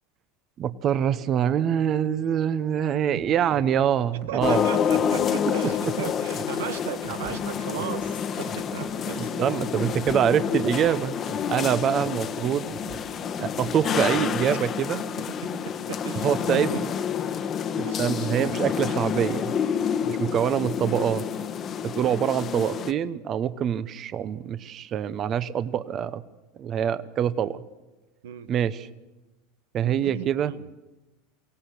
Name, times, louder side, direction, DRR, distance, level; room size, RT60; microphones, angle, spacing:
voice 1, 0.6-4.6 5.5-5.9 9.1-11.2 11.5-12.7 13.4-15.0 16.2-16.8 17.7-19.5 20.0-21.2 21.8-26.2 26.6-27.6 28.5-28.9 29.7-30.5, right 9 dB, 40° right, 0.8 m, -25 dB
sound 1, 3.2-14.4, right 8 dB, 55° right, 2.5 m, -45 dB
voice 2, 4.3-9.3 15.2-16.9 17.8-18.5 28.2-28.5 29.8-30.6, right 11 dB, 75° right, 0.9 m, -37 dB
sound 2, 4.4-22.9, left 7 dB, 40° left, 1.1 m, -28 dB
23.5 x 17.0 x 6.7 m
hypercardioid pair, 100°, 0 cm